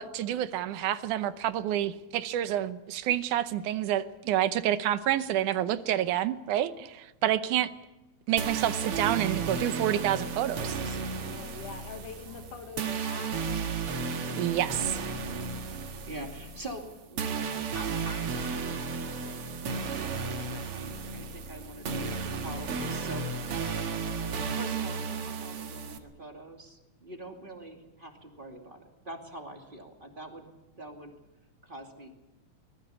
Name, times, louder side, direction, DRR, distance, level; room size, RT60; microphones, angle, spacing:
voice 1, 0.0-7.7 8.3-10.8 14.4-15.1, right 12 dB, 85° right, 12 dB, 2.4 m, -28 dB
sound 1, 8.4-26.0, right 5 dB, 50° right, 2.4 m, -34 dB
voice 2, 10.2-11.0 16.0-16.8 17.1-17.5 17.7-23.5 24.6-28.8 29.0-30.5 30.7-31.1 31.6-32.1, right 1 dB, 15° right, 3 dB, 2.5 m, -45 dB
voice 3, 11.1-13.3, left 6 dB, 85° left, 7 dB, 3.3 m, -44 dB
24.0 x 20.5 x 7.1 m, 0.97 s
omnidirectional pair, 3.5 m